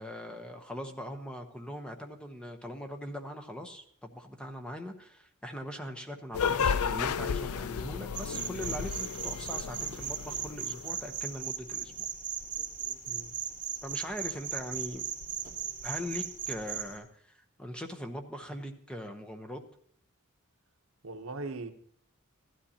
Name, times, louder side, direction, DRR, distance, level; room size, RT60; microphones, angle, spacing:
voice 1, 0.0-12.1 13.8-15.0 15.8-19.6, equal, 5° left, 0.9 m, -41 dB
sound 1, 6.3-11.0, left 6 dB, 80° left, 0.4 m, -33 dB
sound 2, 8.1-17.0, right 8 dB, 35° right, 2.1 m, -37 dB
voice 2, 13.1-13.4 21.0-21.7, right 3 dB, 70° right, 0.9 m, -39 dB
15.5 x 12.5 x 2.8 m
head